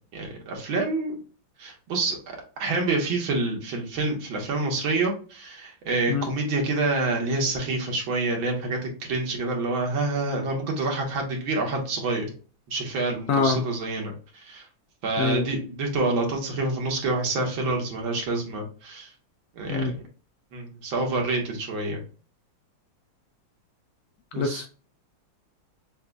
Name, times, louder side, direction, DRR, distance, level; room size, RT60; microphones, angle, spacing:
voice 1, 0.1-1.1 1.6-2.2 2.6-12.3 12.7-14.7 15.0-19.1 19.6-20.0 20.5-22.0 24.3-24.6, right 3 dB, 80° right, 1.9 m, -27 dB
voice 2, 13.3-13.6 15.2-15.4 19.7-19.9 24.4-24.7, left 4 dB, 80° left, 0.8 m, -24 dB
6.4 x 2.7 x 2.2 m
omnidirectional pair, 2.2 m